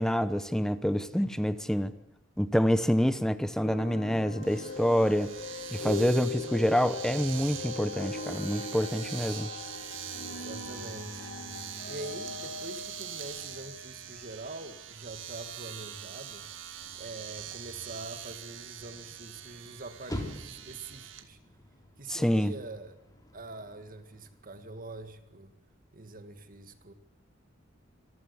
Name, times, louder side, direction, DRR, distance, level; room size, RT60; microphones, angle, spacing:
voice 1, 0.0-1.9 2.4-5.3 5.7-9.5 22.1-22.5, equal, 5° left, 0.9 m, -27 dB
sound 1, 3.5-14.8, left 4 dB, 50° left, 4.7 m, -40 dB
Domestic sounds home sounds, 4.4-21.3, right 10 dB, 70° right, 2.0 m, -43 dB
voice 2, 10.4-11.3 11.9-16.5 16.9-21.4 22.0-23.0 23.3-25.6 25.9-26.9, right 2 dB, 45° right, 2.1 m, -44 dB
sound 2, 16.8-25.1, left 1 dB, 20° left, 3.2 m, -47 dB
26.0 x 15.0 x 9.9 m
head